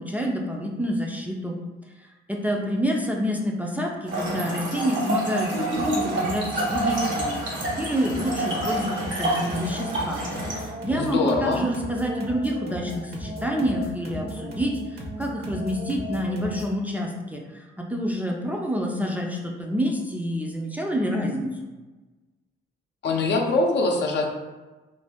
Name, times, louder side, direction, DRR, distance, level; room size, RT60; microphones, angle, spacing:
voice 1, 0.0-1.6 2.0-10.2 10.5-21.7, equal, 10° right, -1 dB, 0.4 m, -28 dB
Trickle dribble / Fill (with liquid), 4.1-10.7, right 1 dB, 70° right, 1.2 m, -28 dB
sound 1, 5.7-16.8, equal, 55° right, 0.8 m, -37 dB
voice 2, 10.9-11.6 23.0-24.3, left 3 dB, 65° left, 1 dB, 0.6 m, -23 dB
2.6 x 2.5 x 3.5 m, 1.2 s
cardioid pair, 90°, 20 cm